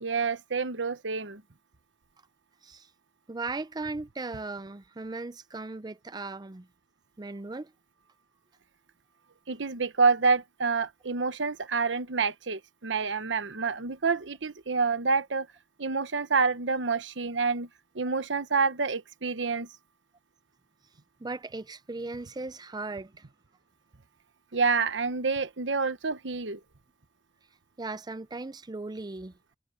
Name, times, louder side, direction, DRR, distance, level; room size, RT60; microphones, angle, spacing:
voice 1, 0.0-1.4 9.5-15.5 15.8-17.7 17.9-19.7 24.5-26.6, right 4 dB, 90° right, 1.1 m, -28 dB
voice 2, 3.3-6.7 7.2-7.7 21.2-23.2 27.8-29.3, right 3 dB, 25° right, 0.5 m, -37 dB
head